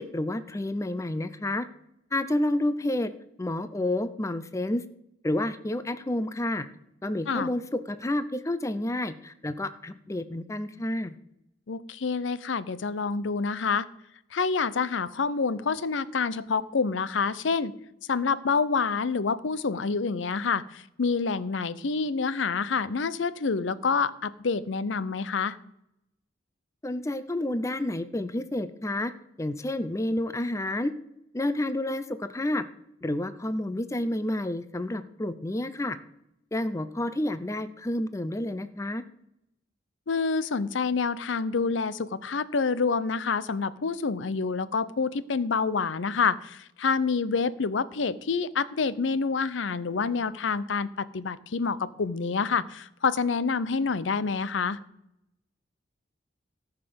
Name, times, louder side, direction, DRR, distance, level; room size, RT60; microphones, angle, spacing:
voice 1, 0.0-1.7 2.1-3.1 3.4-4.8 5.2-6.7 7.0-7.6 7.9-11.1 26.8-29.1 29.4-30.9 31.3-32.7 33.0-36.0 36.5-39.0, left 1 dB, 15° left, 13 dB, 0.5 m, -29 dB
voice 2, 11.7-13.9 14.3-17.7 18.1-25.6 40.1-54.8, left 5 dB, 80° left, 17 dB, 0.6 m, -27 dB
14.0 x 5.8 x 6.9 m, 0.81 s
head